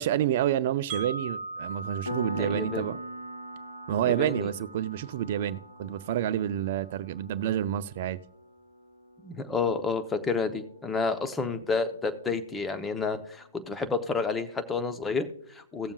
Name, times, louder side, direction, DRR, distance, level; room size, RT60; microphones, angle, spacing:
voice 1, 0.0-3.0 3.9-8.2, right 11 dB, 45° right, 0.5 m, -29 dB
Wind chime, 0.9-6.9, right 3 dB, 25° right, 1.4 m, -41 dB
Piano, 2.1-12.4, equal, 90° left, 1.1 m, -44 dB
voice 2, 2.3-2.9 4.1-4.5 9.2-15.9, left 4 dB, 10° left, 0.8 m, -30 dB
18.0 x 7.1 x 2.4 m
hypercardioid pair, 130°, 0 cm